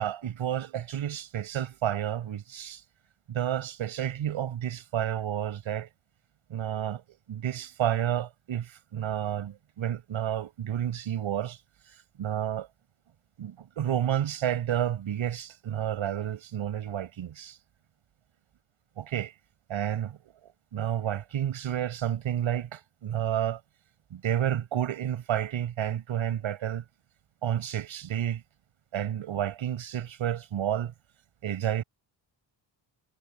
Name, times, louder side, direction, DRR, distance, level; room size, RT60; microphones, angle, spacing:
voice 1, 0.0-2.8 3.3-5.9 6.5-11.6 11.9-12.7 13.4-17.6 19.0-19.3 19.7-20.2 20.4-23.6 24.1-26.8 27.4-28.4 28.9-30.9 31.4-31.8, right 10 dB, 75° right, 7.2 m, -30 dB
cardioid pair, 70°, 48 cm